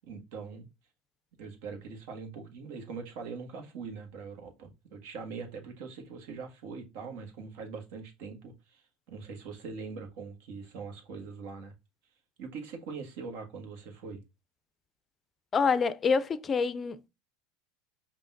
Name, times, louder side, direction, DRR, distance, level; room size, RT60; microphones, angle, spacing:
voice 1, 0.1-0.7 1.4-11.7 12.4-14.2, right 5 dB, 65° right, 1.6 m, -42 dB
voice 2, 15.5-17.1, left 5 dB, 30° left, 0.5 m, -27 dB
5.5 x 2.8 x 2.7 m
hypercardioid pair, 95°, 0 cm